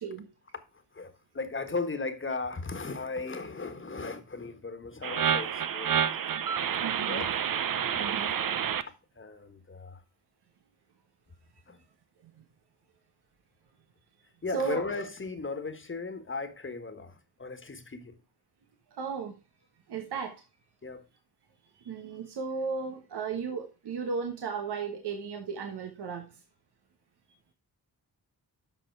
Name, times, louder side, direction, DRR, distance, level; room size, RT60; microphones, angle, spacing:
voice 1, 0.9-6.0 6.6-7.3 7.8-8.0 9.1-10.0 11.7-11.8 14.4-18.2 20.8-21.0, left 3 dB, 30° left, 1.5 m, -37 dB
sound 1, 5.0-8.8, right 8 dB, 55° right, 0.8 m, -29 dB
voice 2, 6.8-7.2 7.9-8.3 12.2-12.4 14.5-14.8 19.0-19.4 19.9-20.4 21.7-26.4, right 5 dB, 80° right, 1.4 m, -35 dB
8.1 x 5.8 x 4.6 m
cardioid pair, 65°, 39 cm